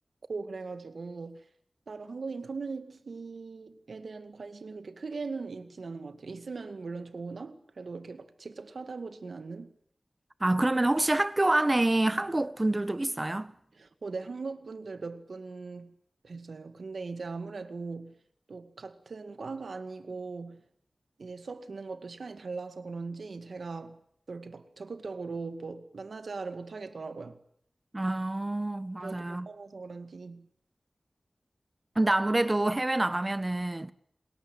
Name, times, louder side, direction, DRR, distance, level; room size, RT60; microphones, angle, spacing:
voice 1, 0.3-1.4 1.9-9.7 13.8-15.9 16.2-18.1 18.5-20.6 21.2-24.0 24.3-27.4 29.0-30.5, right 4 dB, 85° right, 2.1 m, -40 dB
voice 2, 10.4-13.5 27.9-29.5 31.9-33.9, right 2 dB, 30° right, 1.3 m, -27 dB
28.5 x 20.5 x 9.1 m
wide cardioid pair, 65°, 0 cm